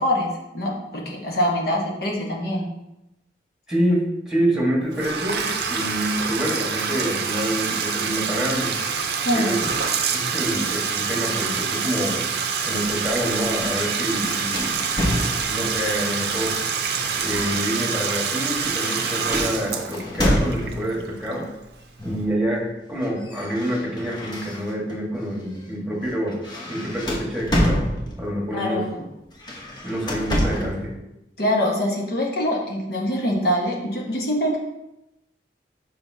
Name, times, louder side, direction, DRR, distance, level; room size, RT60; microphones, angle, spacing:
voice 1, 0.0-2.6 9.2-9.6 28.5-28.9 31.4-34.6, equal, 55° left, -2 dB, 1.3 m, -24 dB
voice 2, 3.7-8.7 9.3-9.7 10.1-12.3 12.6-14.9 15.5-16.5 17.2-21.5 22.0-26.4 26.7-27.8 28.2-28.9 29.8-30.9, equal, 5° right, -3 dB, 1.5 m, -27 dB
Bathtub (filling or washing), 4.9-21.7, right 6 dB, 60° right, 0.6 m, -26 dB
sound 1, 12.7-15.8 16.8-21.0 22.0-22.4 22.7-25.0 25.4-25.6 26.0-28.4 29.3-30.8, equal, 25° left, 1.0 m, -28 dB
6.9 x 5.2 x 2.8 m, 0.92 s
head